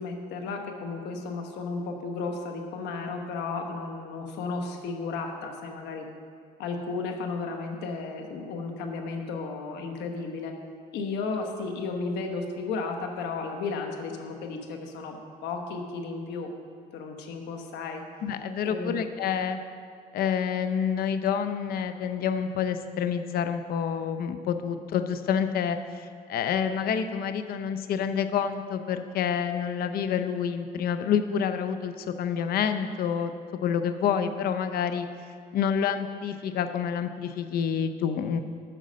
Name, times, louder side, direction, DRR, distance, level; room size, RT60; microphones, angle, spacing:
voice 1, 0.0-6.0 6.6-10.5 10.9-16.5 16.9-18.0 18.6-19.0, left 4 dB, 85° left, 4 dB, 1.2 m, -34 dB
voice 2, 18.2-19.6 20.1-33.3 33.6-35.1 35.5-38.4, left 7 dB, 65° left, 9 dB, 0.7 m, -28 dB
9.9 x 6.2 x 5.2 m, 2.1 s
cardioid pair, 110°, 17 cm